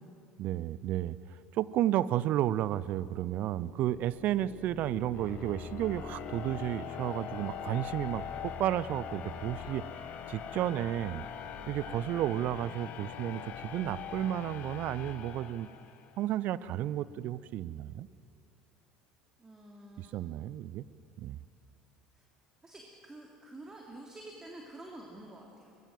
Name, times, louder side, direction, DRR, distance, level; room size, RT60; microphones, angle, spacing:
voice 1, 0.4-9.9 10.3-11.2 11.7-15.7 16.2-18.1 20.0-20.9 21.2-21.4, right 12 dB, 50° right, 19 dB, 0.6 m, -32 dB
sound 1, 3.3-16.2, left 7 dB, 50° left, 1.7 m, -42 dB
voice 2, 19.4-20.2 22.1-22.2 22.6-25.9, right 1 dB, 20° right, 0 dB, 3.0 m, -49 dB
24.0 x 20.0 x 7.8 m, 2.6 s
figure-of-eight pair, 65°, 3 cm